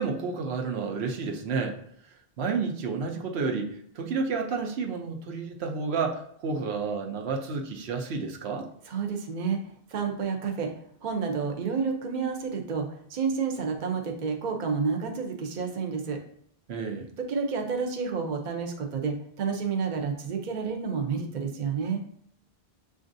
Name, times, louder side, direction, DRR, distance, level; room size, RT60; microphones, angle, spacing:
voice 1, 0.0-1.8 2.0-8.7 16.7-17.1, right 4 dB, 90° right, 3 dB, 1.0 m, -31 dB
voice 2, 8.9-9.6 9.9-10.7 11.0-16.2 17.2-22.0, right 5 dB, 50° right, 3 dB, 0.7 m, -30 dB
6.9 x 2.5 x 2.6 m, 0.65 s
omnidirectional pair, 1.0 m